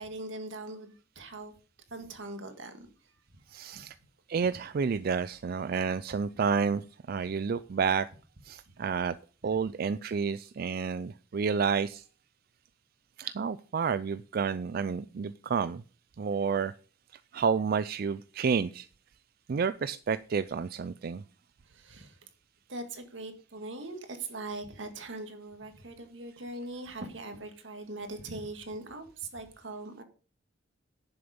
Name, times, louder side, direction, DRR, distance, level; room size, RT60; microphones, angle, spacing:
voice 1, 0.0-1.5 1.9-2.9 3.7-3.8 21.7-22.2 22.7-30.0, right 2 dB, 80° right, 7 dB, 1.9 m, -41 dB
voice 2, 3.5-3.9 4.3-6.8 7.1-8.1 8.4-9.2 9.4-12.0 13.2-15.8 16.2-16.7 17.3-18.9 19.5-21.2, right 6 dB, 55° right, 14 dB, 0.4 m, -30 dB
11.0 x 6.9 x 5.1 m, 0.38 s
head